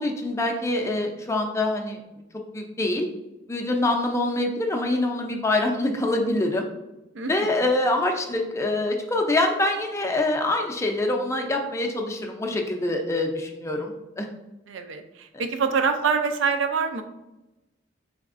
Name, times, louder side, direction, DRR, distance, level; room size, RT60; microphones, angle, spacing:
voice 1, 0.0-2.0 2.5-3.1 3.5-6.7 7.3-14.3 15.3-15.4, left 2 dB, 15° left, 2 dB, 0.4 m, -25 dB
voice 2, 7.1-7.6 14.7-17.0, right 5 dB, 75° right, 7 dB, 0.4 m, -25 dB
4.0 x 3.4 x 2.5 m, 0.96 s
head